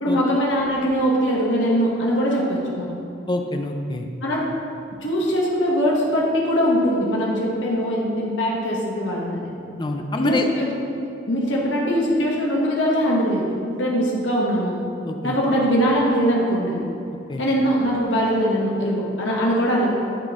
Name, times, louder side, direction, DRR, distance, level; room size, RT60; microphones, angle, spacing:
voice 1, 0.0-2.9 4.2-4.4 5.0-9.5 10.2-10.8 11.3-13.4 13.7-14.7 15.2-16.8 17.4-19.9, equal, 80° left, -3 dB, 1.3 m, -21 dB
voice 2, 3.3-4.1 9.8-10.5 15.0-15.4 17.3-17.4, left 2 dB, 25° left, 4 dB, 0.4 m, -26 dB
11.0 x 4.2 x 3.6 m, 2.8 s
head